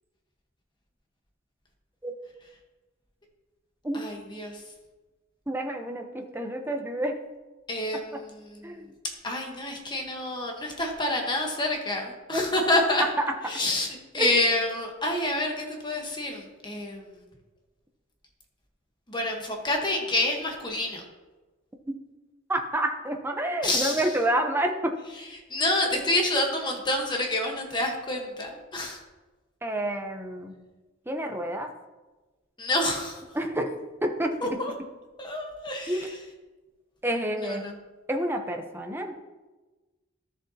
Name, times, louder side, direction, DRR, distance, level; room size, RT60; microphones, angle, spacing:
voice 1, 3.9-4.6 7.7-8.6 9.2-13.0 13.5-17.0 19.1-21.0 23.6-24.1 25.5-29.0 32.6-33.2 34.4-34.7 35.2-36.2 37.4-37.7, left 1 dB, 20° left, 1 dB, 1.2 m, -28 dB
voice 2, 5.5-7.1 8.6-8.9 12.3-12.5 13.0-13.3 14.2-14.3 22.5-24.9 29.6-30.5 31.1-31.7 33.3-33.7 34.0-34.3 35.9-36.1 37.0-37.7 38.1-39.1, right 1 dB, 10° right, 4 dB, 0.7 m, -28 dB
13.5 x 6.7 x 2.8 m, 1.2 s
head